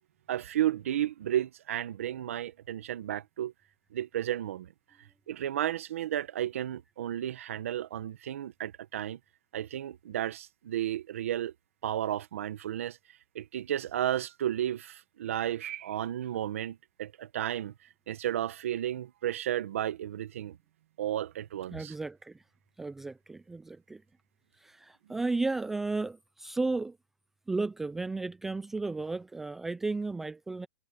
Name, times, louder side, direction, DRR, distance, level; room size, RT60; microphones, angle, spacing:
voice 1, 0.3-3.5 3.9-4.7 5.3-9.2 9.5-11.5 11.8-13.0 13.3-17.7 18.1-20.6 21.0-21.9, right 11 dB, 55° right, 1.4 m, -33 dB
voice 2, 21.7-22.4 22.8-24.0 24.6-27.0 27.5-30.7, right 3 dB, 5° right, 0.3 m, -34 dB
hypercardioid pair, 175°, 9 cm